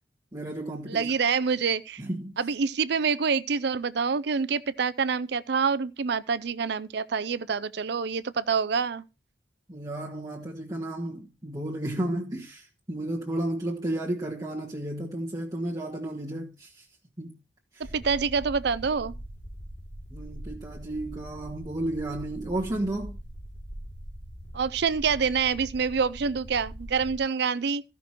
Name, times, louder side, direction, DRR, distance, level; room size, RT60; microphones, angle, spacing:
voice 1, 0.3-1.1 2.0-2.4 9.7-16.9 17.2-17.3 17.7-17.9 20.1-23.2, right 1 dB, 20° right, 1.5 m, -33 dB
voice 2, 0.9-2.0 2.4-9.0 17.9-19.2 24.5-27.8, right 5 dB, 60° right, 0.5 m, -26 dB
sound 1, 17.8-27.2, equal, 65° left, 3.1 m, -42 dB
14.5 x 6.1 x 4.5 m
head